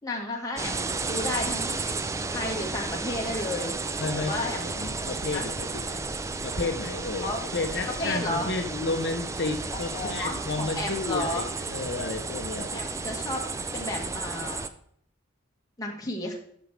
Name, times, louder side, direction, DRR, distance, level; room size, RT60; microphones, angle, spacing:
voice 1, 0.0-2.0 2.3-3.7 4.1-4.9 5.3-5.5 7.2-7.4 7.9-8.5 9.7-11.5 12.6-13.4 13.7-14.7 15.8-16.3, left 1 dB, 20° left, -1 dB, 1.5 m, -33 dB
sound 1, 0.6-14.7, right 3 dB, 15° right, 0.3 m, -33 dB
voice 2, 4.0-6.1 6.4-12.8, left 3 dB, 55° left, 5 dB, 0.6 m, -32 dB
13.0 x 6.1 x 3.2 m, 0.66 s
head